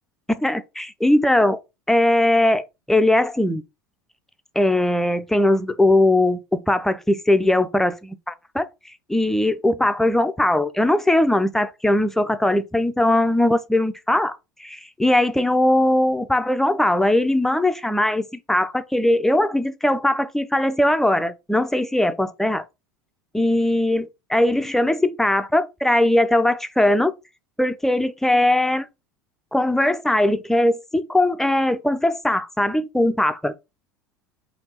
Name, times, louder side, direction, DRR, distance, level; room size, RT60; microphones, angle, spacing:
voice 1, 0.4-1.6 1.9-3.6 4.6-8.7 9.1-22.6 23.3-27.1 27.6-28.9 29.5-33.5, left 1 dB, 5° left, 0.3 m, -20 dB
3.4 x 2.8 x 4.2 m
figure-of-eight pair, 75°, 10 cm